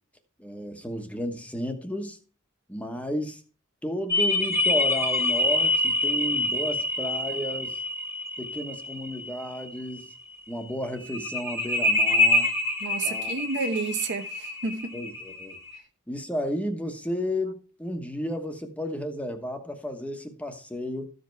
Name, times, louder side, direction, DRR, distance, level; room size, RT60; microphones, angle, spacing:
voice 1, 0.4-2.2 2.7-3.4 3.8-7.8 8.4-10.1 10.5-12.5 13.0-13.3 14.9-15.6 16.1-21.1, left 1 dB, 5° left, 1.1 m, -33 dB
sound 1, 4.1-9.6 11.0-15.7, left 2 dB, 15° right, 1.3 m, -26 dB
voice 2, 12.8-14.9, right 4 dB, 60° right, 1.0 m, -30 dB
14.0 x 5.3 x 4.6 m
head